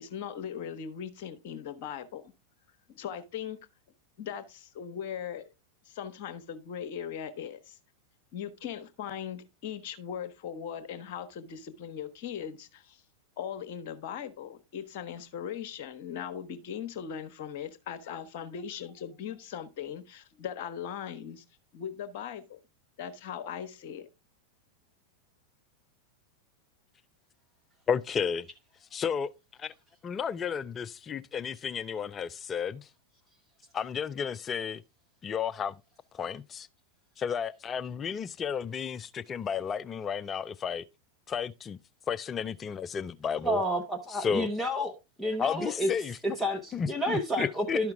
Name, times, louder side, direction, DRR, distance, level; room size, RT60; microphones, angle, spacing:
voice 1, 0.0-2.3 2.9-3.6 4.2-5.5 5.8-7.8 8.3-13.0 13.4-21.4 21.7-22.6 23.0-24.1, left 8 dB, 50° left, 1.1 m, -39 dB
voice 2, 27.9-28.5 28.9-29.3 29.6-29.7 30.0-32.9 33.7-34.8 35.2-35.8 36.1-36.7 37.2-40.8 41.3-41.8 42.1-43.6 44.1-44.5 45.4-46.2 46.7-47.9, left 7 dB, 25° left, 0.4 m, -32 dB
voice 3, 43.4-44.9 45.2-45.9 46.4-47.9, equal, ahead, 1.0 m, -30 dB
11.5 x 5.8 x 3.5 m
figure-of-eight pair, 90°, 0 cm